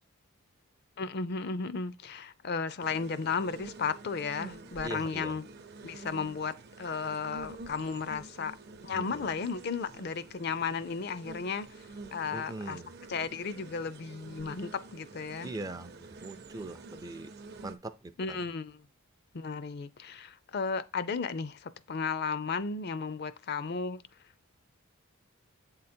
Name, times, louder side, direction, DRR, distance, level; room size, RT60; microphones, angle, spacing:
voice 1, 1.0-5.4 5.8-8.6 8.8-11.7 12.1-12.8 13.1-15.5 18.2-18.8 19.3-24.0, left 5 dB, 50° left, 0.5 m, -34 dB
sound 1, 2.8-17.7, right 3 dB, 50° right, 0.7 m, -48 dB
voice 2, 4.8-5.4 8.9-9.3 12.3-12.9 15.4-17.3 17.6-18.4, right 2 dB, 15° right, 0.4 m, -41 dB
8.0 x 3.8 x 4.3 m
head